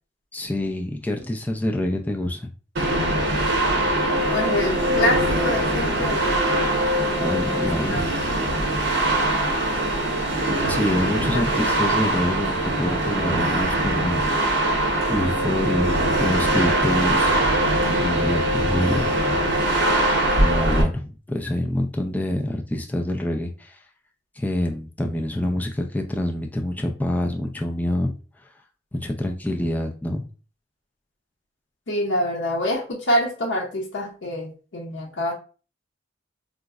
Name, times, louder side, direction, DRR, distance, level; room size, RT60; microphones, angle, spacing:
voice 1, 0.3-2.5 7.2-8.2 10.7-14.2 15.1-17.4 18.0-19.1 20.3-23.8 24.4-28.1 28.9-30.2, left 1 dB, 10° left, 2 dB, 0.3 m, -26 dB
sound 1, 2.8-20.8, right 1 dB, 70° right, 0.7 m, -22 dB
voice 2, 4.3-6.8 7.1-8.0 9.1-9.6 11.2-11.4 31.9-35.3, left 1 dB, 70° left, -2 dB, 0.6 m, -26 dB
3.6 x 2.0 x 2.3 m, 0.36 s
head